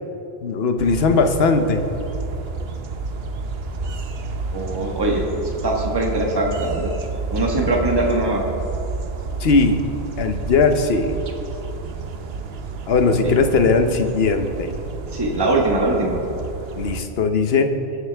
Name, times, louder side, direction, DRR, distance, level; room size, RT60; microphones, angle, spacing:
voice 1, 0.4-1.9 9.4-9.8 10.2-11.2 12.9-14.7 16.7-17.7, left 4 dB, 70° left, 7 dB, 1.1 m, -19 dB
sound 1, 0.8-17.0, right 4 dB, 75° right, 1.0 m, -30 dB
voice 2, 4.5-5.2 5.6-6.9 7.3-8.4 13.2-13.3 15.1-16.2, right 2 dB, 25° right, -1 dB, 1.4 m, -21 dB
22.0 x 8.0 x 3.4 m, 2.8 s
omnidirectional pair, 1.1 m